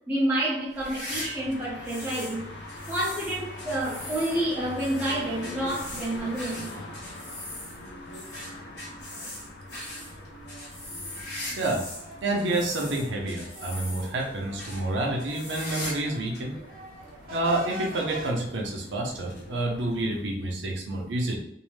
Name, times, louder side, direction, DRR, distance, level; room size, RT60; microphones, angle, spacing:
voice 1, 0.1-2.5 2.9-6.7, right 1 dB, 10° right, -7 dB, 0.8 m, -29 dB
sound 1, 0.7-2.4 2.7-12.1 12.4-14.2 14.6-14.8 15.2-16.1 16.3-16.4 17.2-17.3 18.6-18.7, left 1 dB, 55° left, 1.2 m, -40 dB
sound 2, 1.1-20.2, left 1 dB, 75° left, 0.6 m, -43 dB
sound 3, 11.6-16.3 16.6-18.3, right 2 dB, 50° right, 0.7 m, -43 dB
voice 2, 12.2-16.6 17.3-21.4, right 2 dB, 85° right, 0 dB, 0.6 m, -29 dB
2.6 x 2.1 x 3.1 m, 0.75 s
head